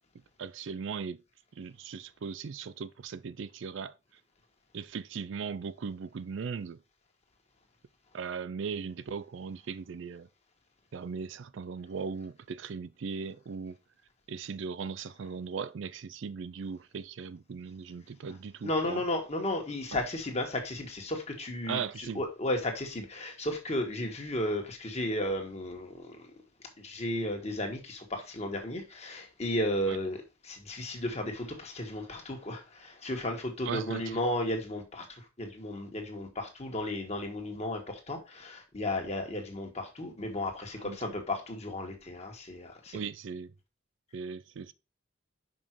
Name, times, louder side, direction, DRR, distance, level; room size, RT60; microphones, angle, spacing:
voice 1, 0.4-1.2 1.6-4.0 4.7-6.8 8.1-10.3 10.9-13.8 14.3-19.0 19.9-20.0 21.7-22.2 29.9-30.0 33.7-34.0 40.8-41.0 42.9-43.5 44.1-44.7, right 5 dB, 65° right, 0.4 m, -38 dB
voice 2, 18.6-26.3 26.6-43.0, left 1 dB, 30° left, 1.6 m, -34 dB
5.6 x 5.4 x 4.5 m
head